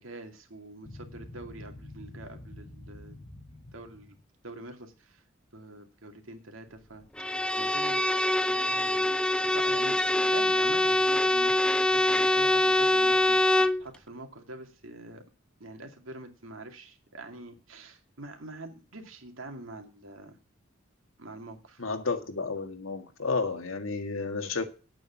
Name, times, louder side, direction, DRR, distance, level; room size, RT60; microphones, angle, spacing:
voice 1, 0.0-3.2 3.7-4.2 4.4-5.2 5.5-8.1 8.5-9.2 9.4-15.2 15.6-20.4 21.2-21.8, right 2 dB, 80° right, 2.5 m, -45 dB
sound 1, 0.8-4.2, left 1 dB, 35° left, 1.2 m, -47 dB
Bowed string instrument, 7.2-13.8, left 1 dB, 5° left, 0.5 m, -24 dB
voice 2, 21.8-24.6, left 4 dB, 90° left, 1.9 m, -31 dB
9.8 x 8.7 x 5.8 m
head